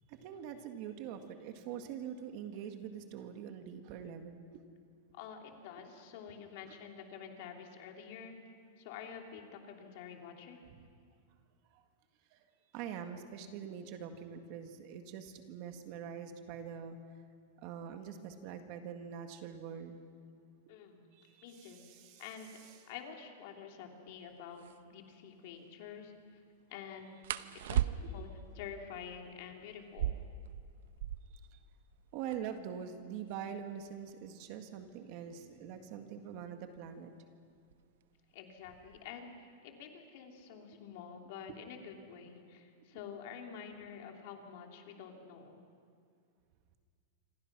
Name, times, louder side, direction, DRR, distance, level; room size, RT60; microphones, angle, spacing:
voice 1, 0.1-4.6 6.7-6.8 10.7-10.8 11.7-11.8 12.3-12.4 12.7-17.0 17.6-20.0 21.1-22.2 28.0-28.1 31.5-31.6 32.1-37.1 41.5-41.6 45.4-45.5, right 8 dB, 40° right, 6 dB, 1.8 m, -44 dB
voice 2, 5.1-8.4 8.8-10.6 20.7-21.0 21.4-21.8 22.2-22.5 22.9-26.4 26.7-27.1 27.7-28.3 28.5-30.2 38.3-39.3 39.6-45.6, left 7 dB, 45° left, 3 dB, 3.0 m, -48 dB
sound 1, 24.1-24.2 24.6-24.8 27.2-28.4 29.8-31.5 31.8-31.9 32.1-32.6 33.3-35.8 36.8-37.1 37.6-38.0 38.4-39.1, right 11 dB, 65° right, 0.9 m, -37 dB
27.0 x 25.5 x 6.1 m, 2.2 s
supercardioid pair, 165°, 0 cm